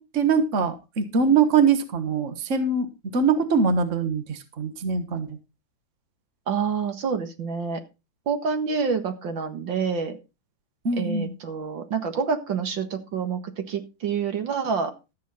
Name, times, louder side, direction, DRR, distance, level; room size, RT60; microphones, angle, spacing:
voice 1, 0.0-2.9 3.1-5.3 10.8-11.3, right 5 dB, 40° right, 8 dB, 1.7 m, -23 dB
voice 2, 6.5-7.8 8.3-10.2 11.0-14.9, right 5 dB, 70° right, 7 dB, 2.3 m, -27 dB
13.5 x 8.6 x 4.2 m, 0.28 s
omnidirectional pair, 2.2 m